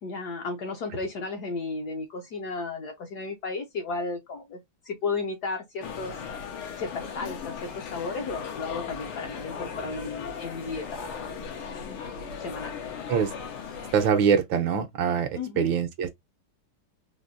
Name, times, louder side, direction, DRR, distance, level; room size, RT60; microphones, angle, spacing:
voice 1, 0.0-6.1 6.8-11.3 11.7-12.8 15.3-15.6, left 4 dB, 60° left, 1.2 m, -34 dB
sound 1, 5.8-14.1, left 6 dB, 80° left, 1.9 m, -37 dB
voice 2, 13.9-15.3 15.6-16.1, right 7 dB, 70° right, 1.3 m, -23 dB
4.4 x 2.7 x 2.4 m
omnidirectional pair, 2.4 m